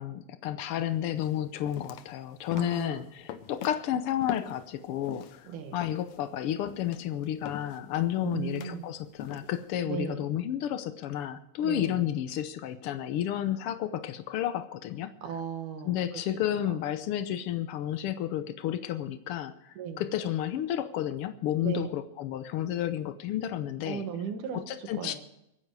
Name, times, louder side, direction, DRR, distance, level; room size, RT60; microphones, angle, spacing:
voice 1, 0.0-15.1 15.8-24.0 24.5-25.1, left 11 dB, 85° left, 11 dB, 1.2 m, -31 dB
sound 1, 0.6-0.8 1.2-5.4 5.8-9.8, left 9 dB, 70° left, 2.0 m, -44 dB
voice 2, 2.5-3.1 5.5-5.8 8.2-8.9 9.9-10.2 11.6-12.1 15.2-16.2 16.7-16.8 19.8-20.0 21.6-21.9 23.8-25.2, right 7 dB, 80° right, 7 dB, 3.0 m, -36 dB
24.0 x 10.0 x 4.8 m, 0.82 s
omnidirectional pair, 3.6 m